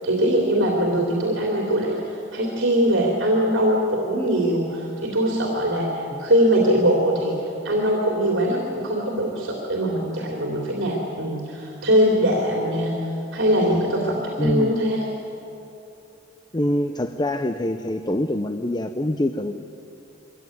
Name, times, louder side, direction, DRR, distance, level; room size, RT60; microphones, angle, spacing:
voice 1, 0.0-7.4 7.6-12.9 13.3-15.0, equal, 80° right, -2 dB, 3.1 m, -22 dB
voice 2, 14.4-14.7 16.5-19.7, left 1 dB, 20° left, 8 dB, 0.6 m, -25 dB
23.5 x 16.5 x 9.3 m, 3.0 s
head